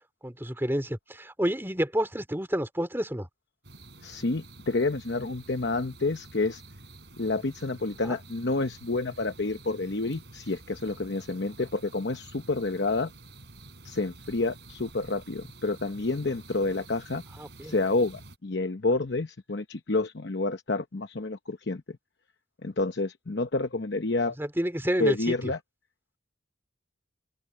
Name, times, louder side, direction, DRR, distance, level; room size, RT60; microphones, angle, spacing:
voice 1, 0.2-3.3 8.0-8.2 17.4-17.7 24.4-25.5, equal, 10° right, 3.1 m, -29 dB
sound 1, 3.6-18.4, right 2 dB, 60° right, 4.8 m, -49 dB
voice 2, 4.0-6.6 7.2-13.1 13.8-17.2 17.6-21.8 22.6-24.4 25.0-25.6, left 3 dB, 60° left, 0.9 m, -29 dB
head